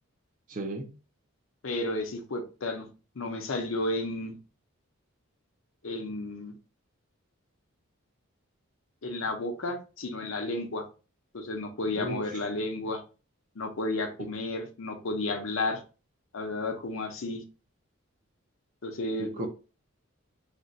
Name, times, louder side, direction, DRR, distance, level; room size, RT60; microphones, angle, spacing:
voice 1, 0.5-0.9 12.0-12.4 14.2-14.3 19.2-19.5, right 1 dB, 35° right, 0.5 m, -35 dB
voice 2, 1.6-2.9 3.2-4.4 5.8-6.5 9.0-10.8 11.3-13.0 13.6-15.8 16.3-17.4 18.8-19.5, left 2 dB, 65° left, 0.6 m, -32 dB
2.5 x 2.2 x 3.9 m
head